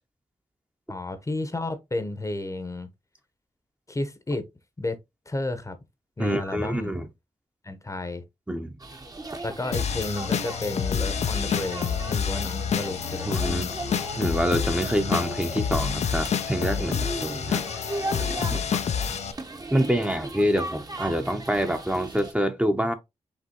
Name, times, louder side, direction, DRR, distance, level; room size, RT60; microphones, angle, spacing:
voice 1, 0.9-2.9 3.9-4.5 4.8-5.0 5.3-5.8 6.2-6.9 7.6-8.2 9.4-13.7 18.4-18.7 19.1-19.2, left 2 dB, 25° left, 0.8 m, -32 dB
voice 2, 6.2-7.1 8.5-8.7 13.3-13.7 14.2-17.6 18.1-18.6 19.7-22.9, equal, 10° right, 0.7 m, -26 dB
sound 1, 8.8-22.3, right 2 dB, 30° right, 0.9 m, -38 dB
sound 2, 9.7-19.3, left 7 dB, 65° left, 0.4 m, -28 dB
5.2 x 3.0 x 2.9 m
cardioid pair, 60°, 12 cm